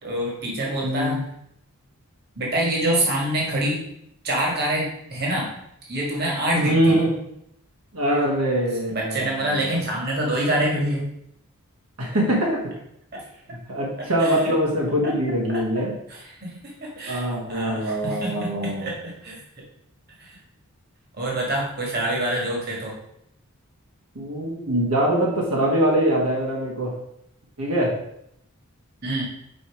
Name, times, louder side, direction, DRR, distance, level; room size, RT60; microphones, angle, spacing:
voice 1, 0.0-1.2 2.3-3.8 4.2-5.5 5.8-7.0 8.9-11.1 13.1-13.2 14.2-14.6 15.0-15.1 15.5-15.8 16.1-18.3 18.8-19.4 20.2-20.4 21.2-22.9 29.0-29.2, right 1 dB, 45° right, -2 dB, 1.8 m, -26 dB
voice 2, 0.8-1.2 6.5-7.1 7.9-9.8 12.0-12.7 13.7-15.9 17.1-18.9 24.1-27.0 27.6-27.9, right 1 dB, 75° right, -3 dB, 1.6 m, -23 dB
5.2 x 4.6 x 4.9 m, 0.76 s
head